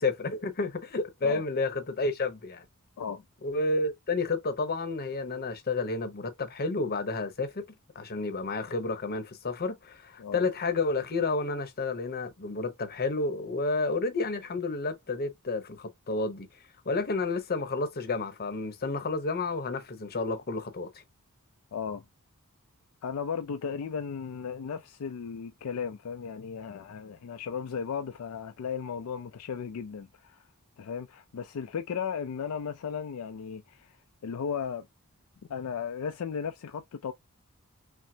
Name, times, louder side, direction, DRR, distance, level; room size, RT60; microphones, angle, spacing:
voice 1, 0.0-2.6 3.4-7.6 7.9-16.5 16.8-21.0, left 3 dB, 45° left, 0.8 m, -31 dB
voice 2, 21.7-22.0 23.0-30.5 30.8-33.9 34.2-34.9 35.5-37.1, left 6 dB, 70° left, 0.4 m, -35 dB
5.9 x 2.0 x 2.7 m
head